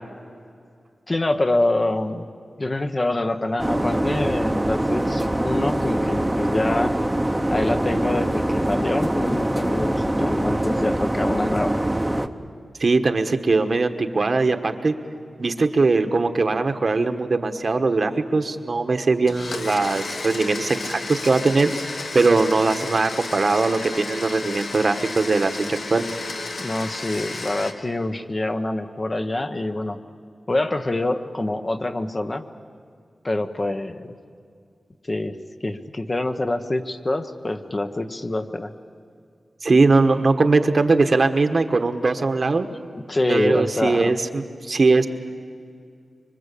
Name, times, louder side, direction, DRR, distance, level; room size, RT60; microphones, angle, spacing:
voice 1, 1.1-2.3 2.6-7.0 7.5-11.8 26.6-30.0 30.5-32.4 33.2-34.1 35.0-35.4 35.6-38.7 42.9-44.1, left 2 dB, 35° left, 7 dB, 1.2 m, -25 dB
sound 1, 3.6-12.3, right 1 dB, 10° right, 1.1 m, -23 dB
voice 2, 12.8-14.9 15.4-21.7 22.1-26.0 39.6-42.7 43.3-45.1, right 3 dB, 55° right, 8 dB, 1.4 m, -20 dB
Domestic sounds home sounds, 19.3-27.7, left 3 dB, 70° left, 1.8 m, -32 dB
25.5 x 24.0 x 8.5 m, 2.3 s
wide cardioid pair, 85°, 0 cm